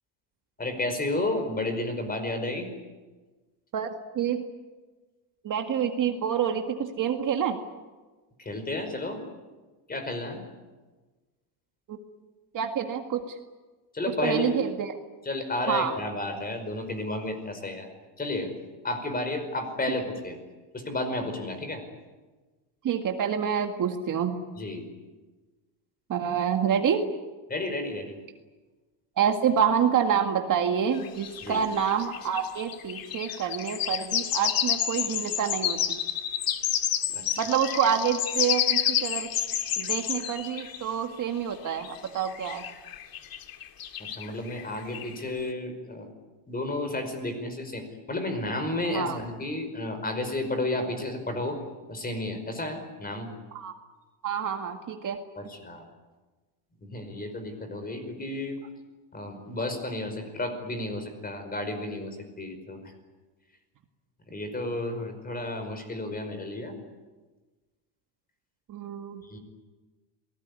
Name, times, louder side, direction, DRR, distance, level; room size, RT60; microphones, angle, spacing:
voice 1, 0.6-2.7 8.4-9.2 9.9-10.4 13.9-14.5 15.2-17.9 18.2-18.5 18.8-20.4 20.7-21.8 24.6-24.8 27.5-28.1 31.4-31.6 37.1-37.4 44.0-46.1 46.5-51.6 51.9-53.3 55.4-55.8 56.8-58.6 59.1-62.9 64.3-66.7 69.3-69.4, left 2 dB, 15° left, 8 dB, 5.3 m, -32 dB
voice 2, 3.7-4.4 5.4-7.6 11.9-12.0 12.5-13.4 14.1-14.9 15.7-15.9 22.8-24.4 26.1-27.1 29.2-36.0 37.4-39.3 39.8-42.7 48.9-49.2 53.5-53.7 54.2-55.2 68.7-69.2, right 8 dB, 40° right, 5 dB, 2.0 m, -27 dB
sound 1, 31.0-40.9 41.7-45.2, left 10 dB, 45° left, 2.3 m, -30 dB
27.5 x 19.5 x 9.8 m, 1.3 s
cardioid pair, 140°, 50 cm